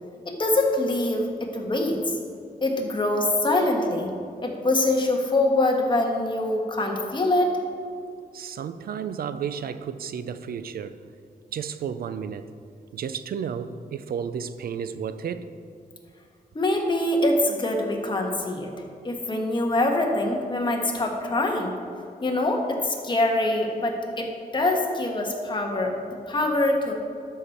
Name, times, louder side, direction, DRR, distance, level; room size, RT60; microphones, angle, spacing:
voice 1, 0.2-2.2 2.6-4.1 4.4-7.5 16.5-18.7 19.0-21.7 22.2-27.0, left 2 dB, 30° left, 1 dB, 1.4 m, -24 dB
voice 2, 8.3-11.0 11.5-12.5 12.9-15.5, right 7 dB, 75° right, 12 dB, 0.4 m, -32 dB
12.5 x 6.5 x 4.3 m, 2.4 s
wide cardioid pair, 125°, 16 cm